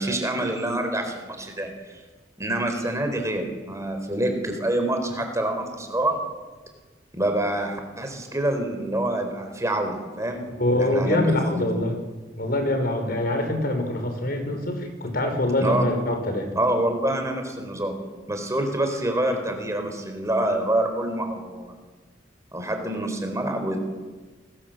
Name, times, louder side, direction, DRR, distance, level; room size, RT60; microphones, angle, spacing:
voice 1, 0.0-1.7 2.4-6.2 7.1-10.4 10.7-11.7 15.6-15.8 16.6-18.0 18.3-21.7 22.5-23.8, right 1 dB, 15° right, 5 dB, 4.1 m, -26 dB
voice 2, 10.6-12.0 12.4-16.5, left 1 dB, 55° left, 5 dB, 5.3 m, -24 dB
28.0 x 20.5 x 7.8 m, 1.3 s
head